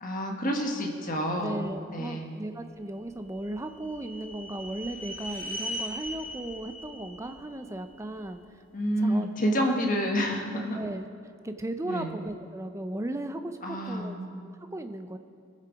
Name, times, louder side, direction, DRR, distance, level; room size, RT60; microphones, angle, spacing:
voice 1, 0.0-2.3 8.7-10.8 11.9-12.1 13.6-14.3, equal, 40° left, 2 dB, 1.4 m, -29 dB
voice 2, 1.4-8.6 9.0-9.8 10.2-11.1 11.4-14.2 14.4-15.2, right 1 dB, 15° right, 8 dB, 0.5 m, -36 dB
sound 1, 3.1-8.3, equal, 10° left, 1.9 m, -40 dB
20.0 x 7.5 x 5.1 m, 2.3 s
head